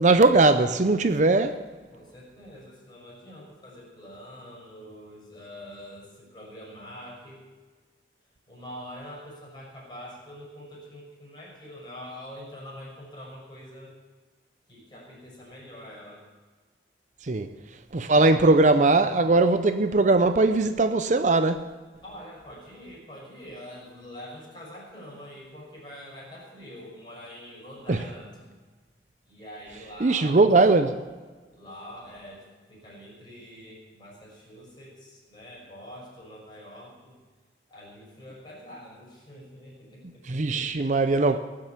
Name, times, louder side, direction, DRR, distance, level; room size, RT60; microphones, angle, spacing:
voice 1, 0.0-1.6 17.2-17.5 17.9-21.7 27.9-28.0 30.0-31.0 40.2-41.4, right 3 dB, 45° right, 0.6 m, -20 dB
voice 2, 1.9-7.5 8.5-13.9 14.7-16.2 22.0-28.4 29.2-30.5 31.5-37.1 37.7-40.7, equal, 25° left, 6.1 m, -45 dB
19.0 x 7.7 x 8.3 m
head